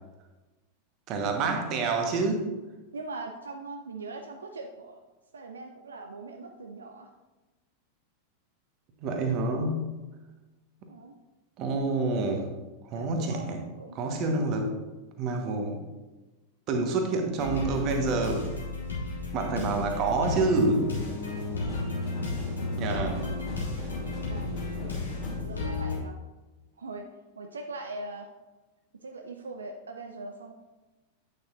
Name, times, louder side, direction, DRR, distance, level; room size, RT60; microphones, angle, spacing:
voice 1, 1.1-2.5 9.0-9.9 11.6-12.5 12.8-13.6 13.9-14.7 15.2-15.8 16.7-18.5 19.3-20.9 22.8-23.2, right 3 dB, 40° right, 4 dB, 1.1 m, -27 dB
voice 2, 2.9-5.0 5.3-7.1 10.9-11.2 12.9-13.5 13.8-14.2 24.3-25.0 25.3-26.2 26.8-27.1 27.4-28.3 29.0-30.5, right 3 dB, 70° right, 4 dB, 0.5 m, -41 dB
sound 1, 17.4-26.0, left 3 dB, 75° left, 2.0 m, -33 dB
sound 2, 20.0-25.4, left 1 dB, 25° left, 2.3 m, -39 dB
8.4 x 6.7 x 2.5 m, 1.2 s
figure-of-eight pair, 90°, 0 cm